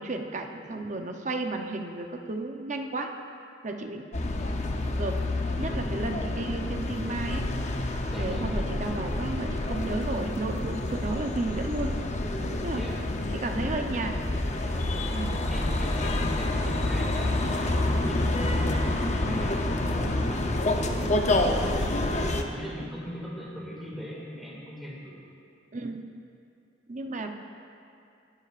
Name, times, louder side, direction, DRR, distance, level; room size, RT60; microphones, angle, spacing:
voice 1, 0.0-3.1 3.6-4.0 4.9-5.2 5.6-7.5 7.7-11.9 12.6-12.8 13.3-14.1 15.1-15.3 17.2-17.5 19.2-19.5 25.7-26.0 26.9-27.3, right 2 dB, 45° right, 4 dB, 0.7 m, -33 dB
sound 1, 4.1-22.4, left 2 dB, 40° left, 0.7 m, -28 dB
voice 2, 8.1-8.5 12.2-13.0 15.5-25.2, equal, ahead, -5 dB, 2.1 m, -40 dB
19.5 x 9.8 x 2.5 m, 2.6 s
head